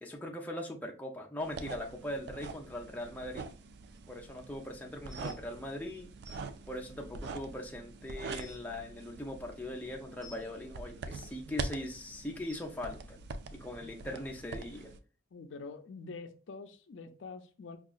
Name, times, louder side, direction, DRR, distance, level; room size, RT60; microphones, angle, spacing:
voice 1, 0.0-3.5 4.1-6.1 6.7-13.2 13.5-14.9, left 1 dB, 10° left, 0.4 m, -40 dB
sound 1, 1.4-15.0, right 4 dB, 55° right, 0.3 m, -44 dB
sound 2, 5.1-5.4 6.2-6.4 7.2-7.3 7.9-8.0 8.2-8.6 10.2-10.4 11.4-11.6 12.5-12.6 13.8-13.9 14.6-14.7 15.4-15.5, equal, 75° right, 1.0 m, -52 dB
voice 2, 15.3-17.8, left 4 dB, 70° left, 0.4 m, -46 dB
4.7 x 2.3 x 2.4 m
head